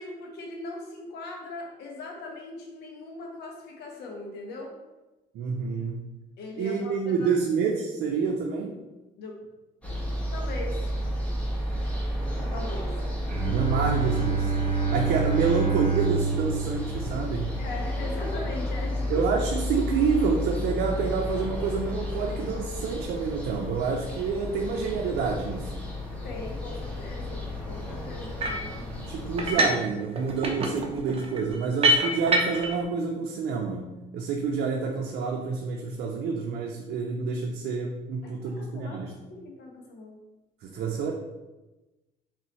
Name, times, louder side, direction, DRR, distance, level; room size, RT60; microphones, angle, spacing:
voice 1, 0.0-4.8 6.4-7.3 9.2-9.5 10.3-10.8 12.5-13.3 17.6-19.3 26.1-28.7 38.2-40.2, left 2 dB, 75° left, 1 dB, 1.1 m, -40 dB
voice 2, 5.3-5.9 6.6-8.8 13.5-14.5 14.9-17.5 19.1-25.8 29.1-39.1 40.6-41.1, right 5 dB, 70° right, 0 dB, 0.6 m, -28 dB
sound 1, 9.8-29.5, left 1 dB, 10° left, 1.3 m, -32 dB
Bowed string instrument, 13.2-19.0, right 5 dB, 50° right, 1.3 m, -28 dB
sound 2, 28.4-28.7 29.4-29.9 30.2-32.8, right 1 dB, 35° right, 0.7 m, -25 dB
4.1 x 3.7 x 3.0 m, 1.1 s
cardioid pair, 110°, 17 cm